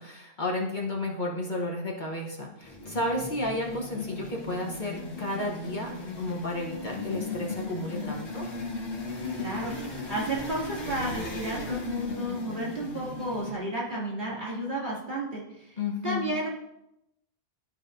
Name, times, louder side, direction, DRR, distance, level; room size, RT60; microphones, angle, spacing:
voice 1, 0.0-8.4 15.8-16.3, left 1 dB, 45° left, -1 dB, 1.1 m, -32 dB
sound 1, 2.6-13.5, left 3 dB, 85° left, 1.6 m, -37 dB
voice 2, 9.3-9.7 10.1-15.8 16.0-16.5, right 1 dB, 45° right, -5 dB, 2.6 m, -32 dB
12.0 x 4.7 x 2.6 m, 0.84 s
omnidirectional pair, 1.1 m